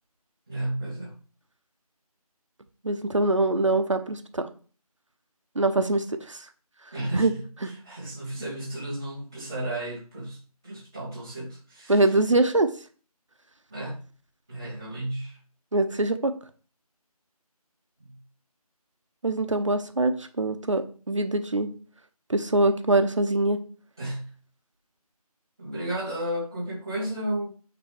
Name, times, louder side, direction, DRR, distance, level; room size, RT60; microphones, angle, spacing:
voice 1, 0.5-1.1 6.9-12.0 13.7-14.0 14.5-15.4 18.0-18.1 24.0-24.3 25.6-27.5, right 1 dB, 5° right, 0.8 m, -33 dB
voice 2, 2.8-4.5 5.5-6.4 7.1-7.3 7.6-7.7 11.9-12.7 15.7-16.3 19.2-21.7 22.3-23.6, right 2 dB, 50° right, 1.0 m, -23 dB
9.0 x 3.9 x 4.8 m
figure-of-eight pair, 175°, 20 cm